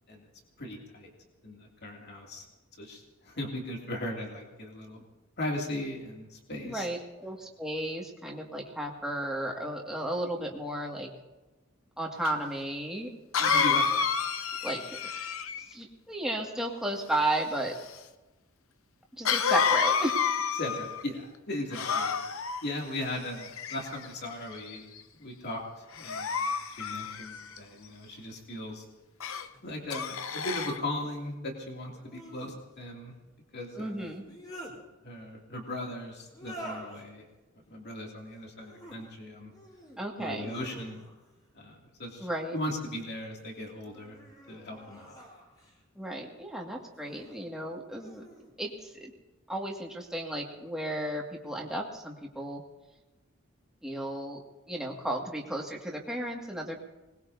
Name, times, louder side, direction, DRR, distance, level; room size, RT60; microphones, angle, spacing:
voice 1, 0.6-1.1 1.4-2.5 2.8-5.0 5.4-6.9 13.5-14.1 20.5-24.8 25.1-26.4 26.8-28.8 29.6-33.1 33.5-34.1 35.0-37.2 37.7-39.5 40.2-41.0 41.5-44.2 44.5-45.2, left 1 dB, 55° left, -1 dB, 2.7 m, -38 dB
voice 2, 6.6-11.1 12.0-13.1 13.4-13.8 14.6-14.8 15.1-15.2 15.7-17.8 19.2-20.2 33.8-34.2 40.0-40.5 42.2-42.6 46.0-48.2 48.6-49.1 49.5-52.6 53.8-56.8, right 1 dB, 5° right, -1 dB, 2.1 m, -34 dB
Cough, 12.2-12.3 13.3-15.7 19.2-21.0 21.7-22.6 23.4-24.1 24.7-25.0 26.0-27.6 29.2-29.5 29.9-30.8, left 6 dB, 75° left, 0.8 m, -29 dB
sound 1, 29.5-29.6 31.9-32.5 34.0-34.8 36.3-37.0 38.5-39.0 39.5-40.0 40.4-41.3 42.5-43.2 43.8-45.8 46.9-47.4 48.0-48.5, equal, 20° left, 4.0 m, -48 dB
24.5 x 20.0 x 2.8 m, 1.1 s
head